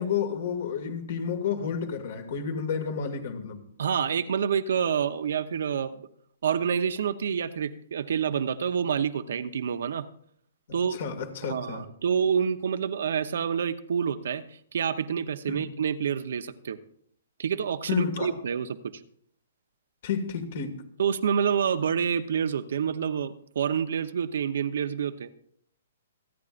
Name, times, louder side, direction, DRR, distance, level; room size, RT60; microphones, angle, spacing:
voice 1, 0.0-3.6 10.7-11.8 15.5-15.7 17.9-18.3 20.0-20.8, left 6 dB, 60° left, 5 dB, 2.2 m, -31 dB
voice 2, 3.8-6.1 6.4-10.0 10.7-11.1 11.4-14.4 14.7-16.8 17.4-18.9 21.0-25.3, right 7 dB, 70° right, 10 dB, 0.8 m, -28 dB
27.5 x 9.5 x 2.5 m, 0.66 s
hypercardioid pair, 145°, 0 cm